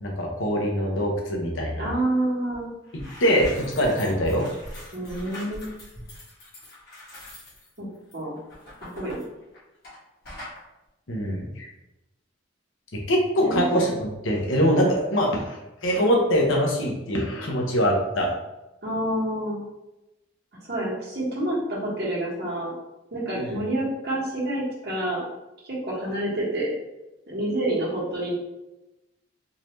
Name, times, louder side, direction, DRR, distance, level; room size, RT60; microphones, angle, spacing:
voice 1, 0.0-1.9 3.2-4.5 11.1-11.7 13.1-18.3 23.3-23.6, equal, 80° left, 0 dB, 0.9 m, -23 dB
voice 2, 1.8-2.7 4.9-5.7 7.8-7.9 8.1-8.4 8.8-9.2 13.4-13.9 18.8-19.6 20.6-22.7 23.1-25.2 25.6-26.7 27.3-28.4, right 1 dB, 55° right, -6 dB, 1.4 m, -28 dB
sound 1, 2.5-2.6 2.9-10.0 10.2-10.6, left 1 dB, 50° left, 1.4 m, -42 dB
3.9 x 2.6 x 3.1 m, 0.97 s
head